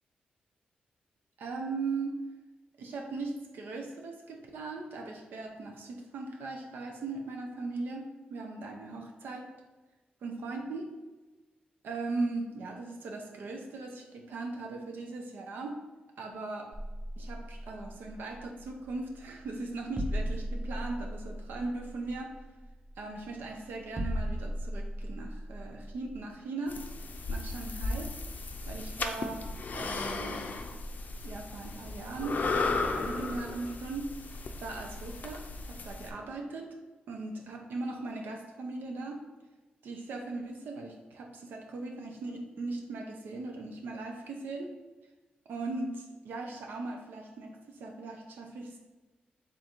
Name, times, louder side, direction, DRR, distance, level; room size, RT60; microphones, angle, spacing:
voice 1, 1.4-2.2 2.8-9.5 10.2-10.9 11.8-15.8 16.2-16.7 17.2-22.3 23.0-26.8 27.3-28.1 28.7-29.4 29.7-30.5 31.2-32.4 32.8-34.1 34.6-36.7 37.1-39.2 39.8-44.7 45.5-48.8, right 3 dB, 80° right, 2 dB, 0.5 m, -38 dB
sound 1, 16.7-26.3, equal, 25° right, 0.4 m, -38 dB
sound 2, 26.7-36.1, left 3 dB, 55° left, 0.4 m, -35 dB
3.5 x 2.5 x 4.2 m, 1.2 s
cardioid pair, 65°, 3 cm